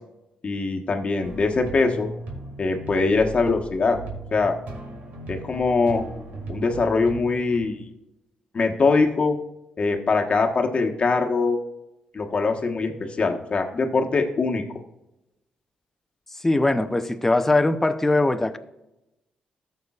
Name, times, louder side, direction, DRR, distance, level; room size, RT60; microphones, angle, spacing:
voice 1, 0.4-2.1 2.6-4.0 4.3-4.5 5.3-6.0 6.5-7.9 8.5-9.4 9.8-11.6 12.1-14.6, left 4 dB, 40° left, 3 dB, 1.2 m, -22 dB
sound 1, 1.2-7.6, right 2 dB, 70° right, 2.1 m, -38 dB
voice 2, 16.4-18.6, left 2 dB, 10° left, 9 dB, 0.6 m, -21 dB
13.5 x 6.7 x 2.4 m, 0.92 s
cardioid pair, 95°, 3 cm